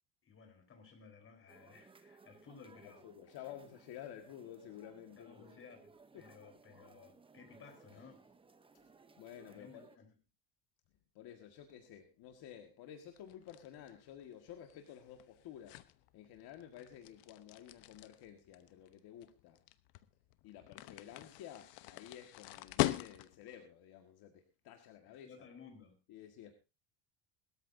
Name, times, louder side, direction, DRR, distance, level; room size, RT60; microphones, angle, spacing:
voice 1, 0.2-3.1 5.2-8.2 9.5-10.1 25.2-26.0, left 5 dB, 30° left, 4 dB, 4.4 m, -57 dB
sound 1, 1.5-10.0, right 4 dB, 10° right, 0.8 m, -62 dB
voice 2, 2.8-5.6 6.1-6.3 9.2-9.9 11.1-19.6 20.4-25.5 26.1-26.5, left 10 dB, 60° left, 4 dB, 1.9 m, -52 dB
sound 2, 13.1-23.5, left 18 dB, 90° left, 1.0 m, -42 dB
20.5 x 13.5 x 2.7 m, 0.28 s
cardioid pair, 145°, 43 cm